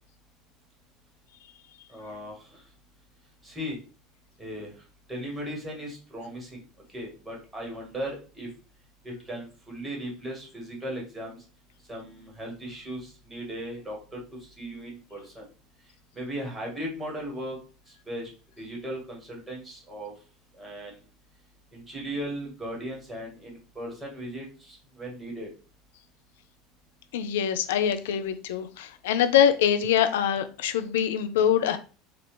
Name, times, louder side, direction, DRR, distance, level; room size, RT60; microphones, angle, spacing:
voice 1, 1.9-2.6 3.4-3.8 4.4-4.7 5.1-6.6 6.9-8.5 9.0-11.4 11.9-15.4 16.1-17.6 17.9-18.3 18.6-20.1 20.6-21.0 21.7-25.5, equal, 15° right, 1.8 m, -37 dB
voice 2, 27.1-31.8, left 9 dB, 65° left, 0.4 m, -24 dB
4.6 x 2.4 x 3.3 m
figure-of-eight pair, 70°, 0 cm